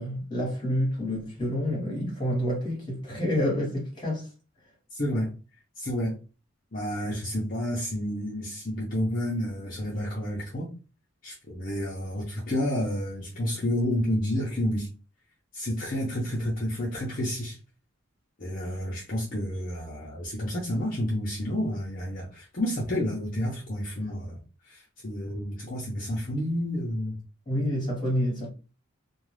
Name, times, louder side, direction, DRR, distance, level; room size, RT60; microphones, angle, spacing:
voice 1, 0.0-4.3 27.5-28.5, equal, 20° left, 1.2 m, -28 dB
voice 2, 4.9-5.3 5.8-6.2 6.7-10.7 11.2-14.9 15.5-17.6 18.4-24.4 24.7-27.2, left 1 dB, 40° left, 0.6 m, -30 dB
2.4 x 2.3 x 3.1 m
head